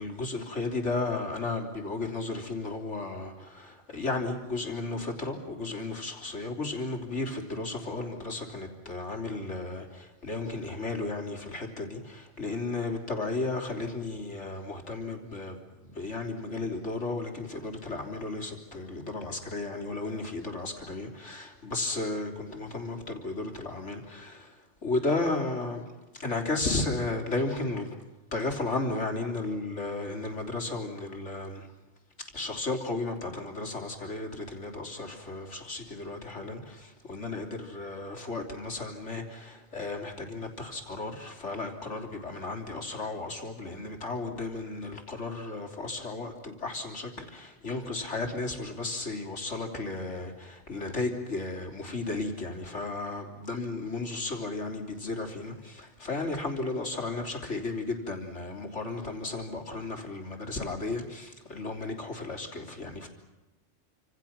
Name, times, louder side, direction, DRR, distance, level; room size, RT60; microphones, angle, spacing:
voice 1, 0.0-25.8 26.1-28.0 28.3-31.7 32.3-63.1, left 3 dB, 65° left, 2 dB, 3.8 m, -34 dB
28.5 x 26.5 x 5.9 m, 1.1 s
omnidirectional pair, 1.3 m